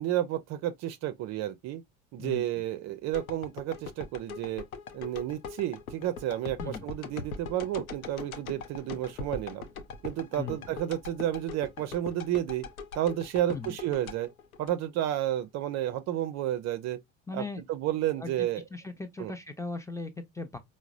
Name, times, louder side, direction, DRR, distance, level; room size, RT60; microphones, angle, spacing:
voice 1, 0.0-1.8 2.1-4.6 4.9-9.6 10.0-12.7 12.9-14.3 14.6-17.0 17.3-18.6 19.2-19.3, right 12 dB, 40° right, 0.5 m, -31 dB
sound 1, 3.1-15.3 15.7-15.8, left 5 dB, 85° left, 0.6 m, -42 dB
voice 2, 17.3-17.6 18.2-20.6, left 3 dB, 5° left, 0.6 m, -38 dB
4.7 x 2.0 x 2.5 m
figure-of-eight pair, 65°, 41 cm